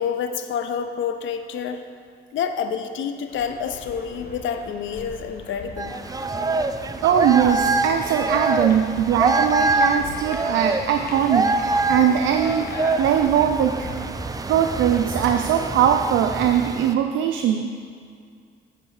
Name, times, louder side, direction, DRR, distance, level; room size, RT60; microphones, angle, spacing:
voice 1, 0.0-1.8 2.3-6.0, left 7 dB, 75° left, 8 dB, 0.6 m, -28 dB
sound 1, 3.3-15.8, left 3 dB, 50° left, 1.2 m, -41 dB
sound 2, 5.8-16.9, right 3 dB, 20° right, 0.4 m, -25 dB
voice 2, 7.0-14.1 14.5-17.7, right 9 dB, 75° right, 5 dB, 0.5 m, -21 dB
9.8 x 3.9 x 6.4 m, 2.2 s
cardioid pair, 90°, 20 cm